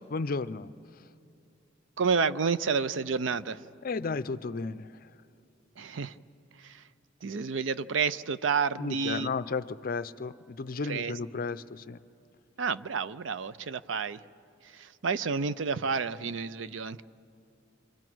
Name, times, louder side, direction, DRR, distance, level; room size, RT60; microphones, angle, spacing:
voice 1, 0.1-0.7 3.8-4.9 8.8-12.0, left 4 dB, 50° left, 14 dB, 0.5 m, -33 dB
voice 2, 2.0-3.7 5.8-6.1 6.6-6.8 7.2-9.3 10.8-11.1 12.6-14.2 14.7-17.0, right 5 dB, 80° right, 15 dB, 0.5 m, -30 dB
29.0 x 25.5 x 6.1 m, 2.6 s
head